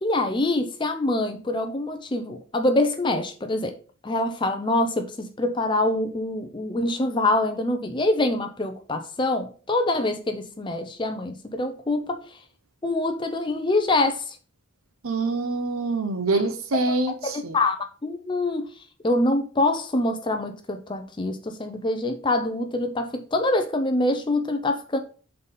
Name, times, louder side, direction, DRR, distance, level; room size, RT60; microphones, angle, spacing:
voice 1, 0.0-3.8 4.0-12.4 12.8-14.4 16.3-16.4 16.9-17.8 18.0-25.0, left 2 dB, 20° left, 0.5 m, -25 dB
voice 2, 15.0-17.6, right 3 dB, 75° right, 0.7 m, -25 dB
5.5 x 4.0 x 5.2 m
head